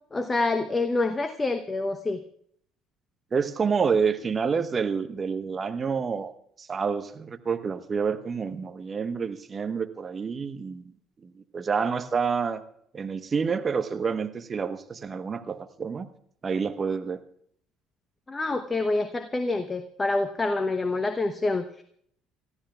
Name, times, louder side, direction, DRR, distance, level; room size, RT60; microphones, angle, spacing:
voice 1, 0.1-2.2 18.3-21.8, left 2 dB, 20° left, 10 dB, 0.9 m, -27 dB
voice 2, 3.3-6.3 6.6-10.8 11.2-12.6 12.9-16.1 16.4-17.2, right 5 dB, 35° right, 9 dB, 1.1 m, -28 dB
29.5 x 14.0 x 2.4 m, 0.66 s
figure-of-eight pair, 55°, 0 cm